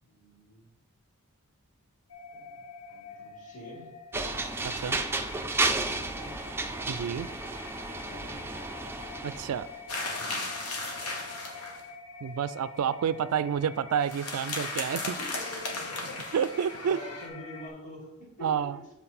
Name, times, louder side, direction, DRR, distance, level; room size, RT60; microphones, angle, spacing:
voice 1, 0.0-0.7 2.3-4.0 5.3-6.4 7.9-8.6 10.1-10.5 15.2-16.3 16.9-18.9, left 1 dB, 35° left, -3 dB, 2.2 m, -47 dB
sound 1, 2.1-17.7, left 4 dB, 65° left, 0.8 m, -47 dB
sound 2, 4.1-9.8, right 3 dB, 10° right, 0.4 m, -32 dB
voice 2, 4.6-5.0 6.9-7.3 9.2-9.7 12.2-15.2 16.3-17.0 18.4-18.8, right 8 dB, 80° right, 15 dB, 0.3 m, -29 dB
sound 3, 9.9-11.9 14.0-17.3, left 2 dB, 85° left, 1.3 m, -36 dB
7.8 x 4.2 x 4.2 m, 0.92 s
head